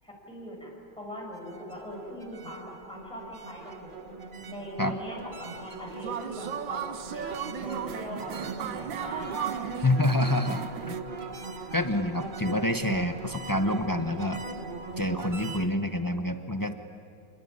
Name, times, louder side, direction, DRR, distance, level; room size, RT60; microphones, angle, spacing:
voice 1, 0.0-4.1 4.5-9.7, equal, 5° left, -3 dB, 6.7 m, -41 dB
sound 1, 1.2-15.7, right 4 dB, 30° right, 1.2 m, -40 dB
sound 2, 5.9-11.0, right 9 dB, 90° right, 1.6 m, -36 dB
voice 2, 9.8-11.0 11.7-14.4 15.0-16.7, left 1 dB, 20° left, 6 dB, 0.6 m, -27 dB
27.5 x 21.0 x 9.8 m, 2.7 s
omnidirectional pair, 2.0 m